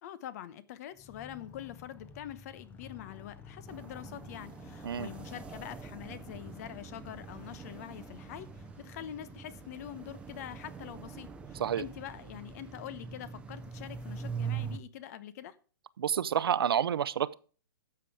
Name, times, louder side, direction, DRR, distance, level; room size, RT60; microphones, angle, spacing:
voice 1, 0.0-15.6, left 11 dB, 45° left, 1.0 m, -45 dB
Motorcycle, 0.9-11.6, left 6 dB, 15° left, 1.1 m, -53 dB
sound 1, 3.7-14.8, right 6 dB, 10° right, 0.8 m, -43 dB
voice 2, 16.0-17.3, right 9 dB, 75° right, 0.8 m, -29 dB
12.5 x 7.2 x 4.9 m
hypercardioid pair, 150°, 12 cm